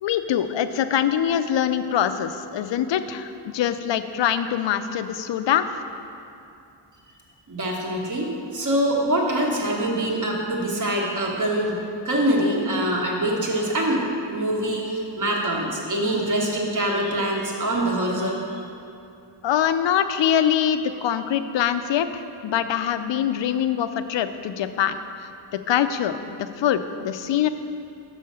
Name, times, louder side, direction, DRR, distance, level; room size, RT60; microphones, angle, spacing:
voice 1, 0.0-5.6 19.4-25.0 25.5-27.5, left 9 dB, 75° left, 10 dB, 0.5 m, -24 dB
voice 2, 7.5-18.6, right 1 dB, 40° right, -1 dB, 1.2 m, -24 dB
6.4 x 5.6 x 6.6 m, 2.6 s
wide cardioid pair, 140°, 45 cm